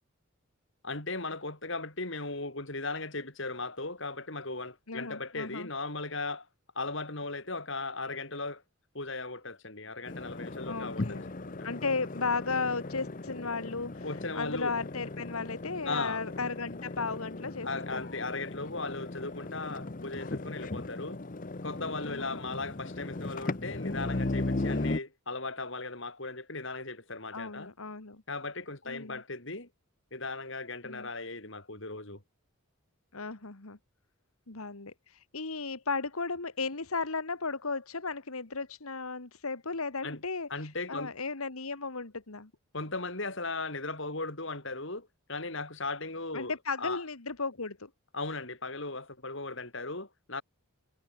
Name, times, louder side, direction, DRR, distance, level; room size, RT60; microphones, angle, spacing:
voice 1, 0.8-6.5 6.7-8.6 8.9-11.2 11.4-11.7 14.0-14.7 15.8-16.2 17.6-21.2 21.6-27.7 28.3-29.7 30.1-32.2 40.0-40.2 40.5-41.1 42.7-46.5 46.8-47.0 48.1-50.4, left 3 dB, 60° left, 5.1 m, -37 dB
voice 2, 4.9-5.7 10.7-11.3 11.6-14.1 14.3-18.0 22.0-22.5 27.3-28.2 28.9-29.2 30.8-31.1 33.1-33.8 34.5-42.5 46.3-47.9, left 4 dB, 80° left, 1.9 m, -35 dB
sound 1, 10.1-25.0, left 2 dB, 40° left, 0.8 m, -37 dB
head